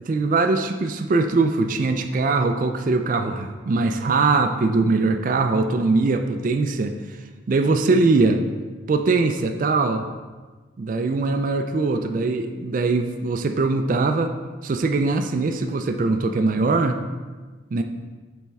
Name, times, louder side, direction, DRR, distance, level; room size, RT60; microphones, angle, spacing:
voice 1, 0.0-6.9 7.5-8.4 8.9-10.0 10.8-14.3 14.6-17.0 17.7-17.8, right 3 dB, 45° right, 6 dB, 0.3 m, -21 dB
7.2 x 4.3 x 3.5 m, 1.3 s
head